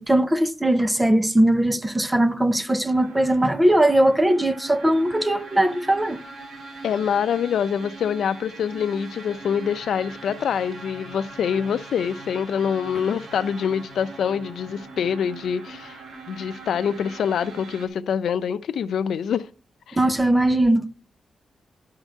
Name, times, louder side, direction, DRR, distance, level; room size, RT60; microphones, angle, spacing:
voice 1, 0.0-6.2 20.0-20.9, right 1 dB, 10° right, 0.6 m, -20 dB
sound 1, 2.8-17.9, right 3 dB, 75° right, 2.5 m, -41 dB
voice 2, 6.8-16.0 16.3-19.5 19.9-20.0, left 7 dB, 75° left, 0.6 m, -25 dB
11.5 x 4.8 x 6.5 m
wide cardioid pair, 175°, 0 cm